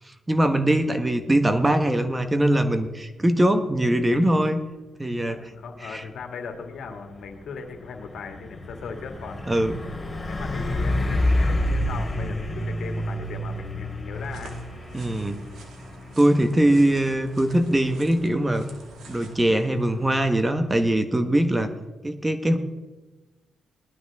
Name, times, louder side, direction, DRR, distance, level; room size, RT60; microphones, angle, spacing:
voice 1, 0.0-4.6 5.0-5.4 5.8-6.0 9.5-9.8 14.9-15.4 16.2-18.7 19.1-21.7 22.0-22.6, right 1 dB, 15° right, 8 dB, 1.2 m, -22 dB
voice 2, 5.3-9.5 10.3-14.6 16.8-16.9, left 5 dB, 75° left, 4 dB, 2.1 m, -38 dB
Truck, 6.5-20.8, left 1 dB, 15° left, 3.9 m, -30 dB
sound 1, 14.1-20.1, right 4 dB, 80° right, 2.3 m, -48 dB
19.0 x 12.0 x 3.6 m, 1.2 s
cardioid pair, 80°, 0 cm